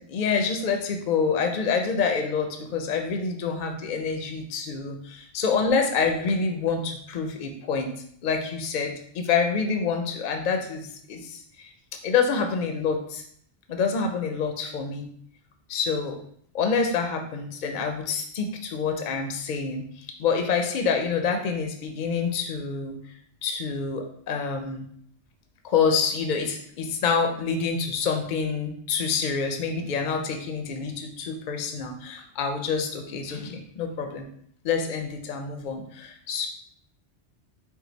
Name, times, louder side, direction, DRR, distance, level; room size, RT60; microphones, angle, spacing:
voice 1, 0.0-7.9 8.2-11.7 12.0-13.2 13.7-15.1 15.7-16.1 16.5-23.0 23.4-24.9 25.6-34.2 34.6-36.5, left 5 dB, 60° left, 5 dB, 0.5 m, -27 dB
4.5 x 2.0 x 3.9 m, 0.65 s
omnidirectional pair, 1.2 m